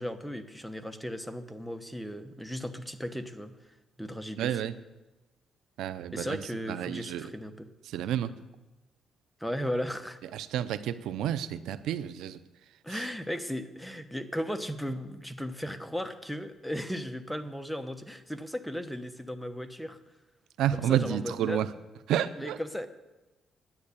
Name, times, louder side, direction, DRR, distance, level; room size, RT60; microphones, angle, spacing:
voice 1, 0.0-3.5 4.0-4.6 6.1-7.7 9.4-10.2 12.8-20.0 20.7-21.6 22.4-22.9, equal, ahead, 8 dB, 1.0 m, -36 dB
voice 2, 4.4-4.7 5.8-6.4 6.7-7.3 7.9-8.3 10.3-12.4 12.9-13.0 20.6-21.7 22.1-22.6, right 10 dB, 90° right, 15 dB, 0.5 m, -30 dB
11.0 x 9.6 x 8.4 m, 1.1 s
cardioid pair, 105°, 0 cm